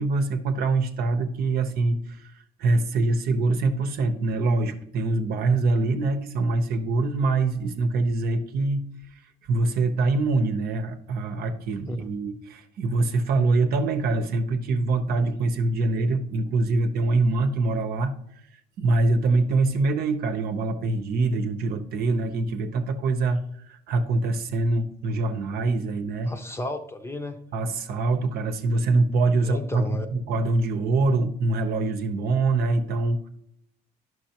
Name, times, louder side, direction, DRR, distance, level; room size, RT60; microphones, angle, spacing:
voice 1, 0.0-8.9 9.5-18.1 18.8-26.3 27.5-33.3, right 3 dB, 65° right, 7 dB, 0.9 m, -24 dB
voice 2, 26.3-27.4 29.4-30.1, left 1 dB, 15° left, 7 dB, 0.7 m, -32 dB
10.5 x 6.2 x 2.9 m, 0.73 s
cardioid pair, 110°, 17 cm